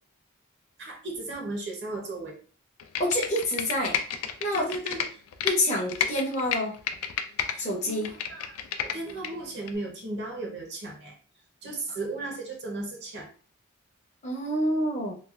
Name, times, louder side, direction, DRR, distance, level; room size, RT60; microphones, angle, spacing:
voice 1, 0.8-2.4 4.5-5.2 7.5-11.1 11.6-13.3, right 2 dB, 55° right, 0 dB, 0.9 m, -36 dB
Computer keyboard, 2.8-5.5 5.9-7.6 7.9-9.3 9.7-9.8, left 8 dB, 80° left, 0.4 m, -30 dB
voice 2, 3.0-4.0 4.4-4.7 5.4-6.7 7.6-8.1 14.2-15.2, left 1 dB, 35° left, -1 dB, 0.6 m, -27 dB
3.1 x 2.3 x 2.4 m, 0.41 s
head